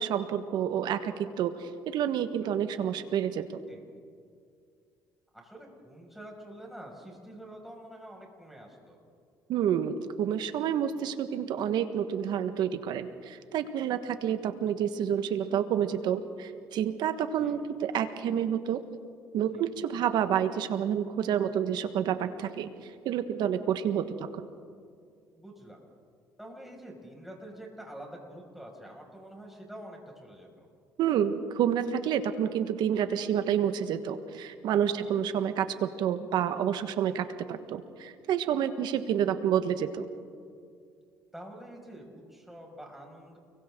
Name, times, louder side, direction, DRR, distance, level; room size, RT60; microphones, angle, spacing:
voice 1, 0.0-3.4 9.5-18.8 19.3-22.7 23.0-24.4 31.0-40.1, right 9 dB, 70° right, 9 dB, 1.5 m, -29 dB
voice 2, 5.3-9.0 17.4-17.6 19.5-19.6 25.4-25.8 26.4-30.7 34.9-35.1 41.3-43.4, right 1 dB, 5° right, -1 dB, 6.4 m, -47 dB
29.5 x 23.0 x 3.9 m, 2.3 s
supercardioid pair, 85°, 8 cm